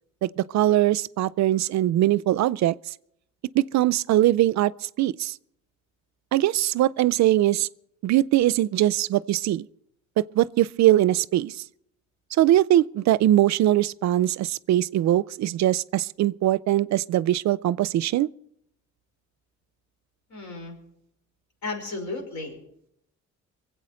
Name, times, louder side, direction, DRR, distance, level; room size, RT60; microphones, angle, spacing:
voice 1, 0.2-2.8 3.5-5.3 6.3-7.7 8.0-9.7 10.2-11.6 12.4-18.3, right 13 dB, 65° right, 0.5 m, -21 dB
voice 2, 20.3-20.8 21.6-22.6, left 3 dB, 70° left, 5.5 m, -34 dB
23.0 x 8.2 x 6.4 m
cardioid pair, 90°, 30 cm